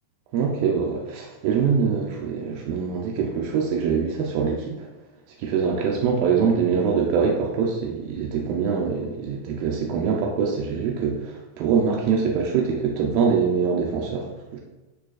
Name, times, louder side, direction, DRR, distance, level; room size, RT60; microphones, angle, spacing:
voice 1, 0.3-4.9 5.4-14.6, right 6 dB, 85° right, 0 dB, 2.1 m, -24 dB
9.3 x 5.0 x 2.4 m, 1.1 s
omnidirectional pair, 4.9 m